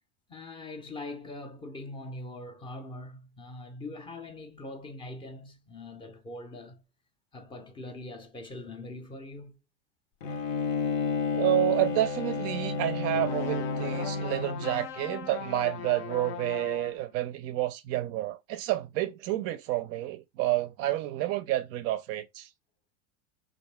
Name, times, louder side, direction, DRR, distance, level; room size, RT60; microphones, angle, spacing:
voice 1, 0.3-6.8 7.3-9.6 18.2-18.3, left 2 dB, 15° left, 0.5 m, -42 dB
Bowed string instrument, 10.2-14.9, left 5 dB, 80° left, 0.9 m, -31 dB
voice 2, 11.3-22.5, right 15 dB, 40° right, 0.4 m, -29 dB
sound 1, 13.1-17.1, left 9 dB, 60° left, 0.6 m, -39 dB
3.4 x 2.6 x 3.2 m
supercardioid pair, 130°, 40 cm